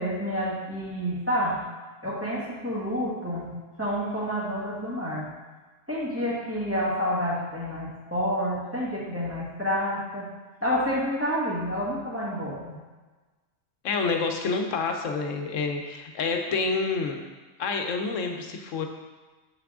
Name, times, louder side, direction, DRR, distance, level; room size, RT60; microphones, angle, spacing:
voice 1, 0.0-1.6 2.0-5.3 5.9-10.3 10.6-12.8, equal, 10° right, -8 dB, 1.9 m, -29 dB
voice 2, 13.8-17.2 17.6-18.9, left 4 dB, 90° left, 4 dB, 1.2 m, -28 dB
7.4 x 5.9 x 3.7 m, 1.3 s
omnidirectional pair, 1.3 m